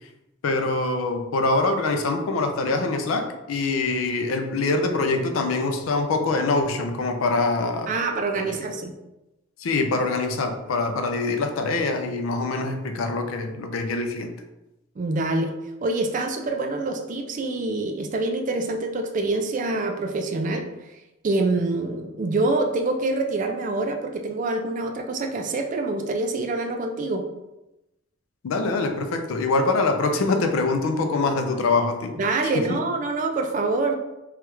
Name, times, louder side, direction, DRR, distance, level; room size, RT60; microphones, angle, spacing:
voice 1, 0.4-7.9 8.3-8.6 9.6-14.3 28.4-32.2 32.6-32.8, left 3 dB, 80° left, 6 dB, 0.4 m, -24 dB
voice 2, 7.9-8.9 15.0-15.5 15.8-20.6 21.2-27.2 32.2-33.9, right 2 dB, 35° right, 5 dB, 0.3 m, -25 dB
3.1 x 2.4 x 2.9 m, 0.96 s
head